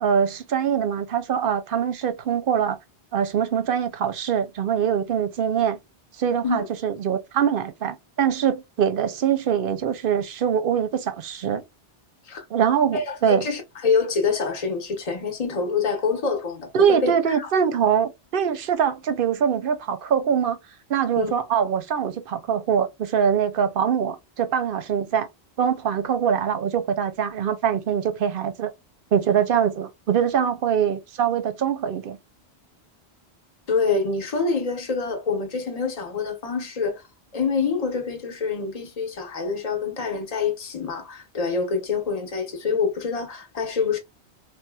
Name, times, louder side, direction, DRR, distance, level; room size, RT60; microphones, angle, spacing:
voice 1, 0.0-2.8 3.1-5.8 6.2-11.6 12.5-13.5 16.7-20.6 20.9-25.3 25.6-28.7 29.1-32.2, right 8 dB, 60° right, 0.7 m, -23 dB
voice 2, 12.9-17.5 21.2-21.3 33.7-37.0 37.3-44.0, left 5 dB, 40° left, 0.9 m, -26 dB
4.1 x 2.1 x 2.2 m
omnidirectional pair, 1.1 m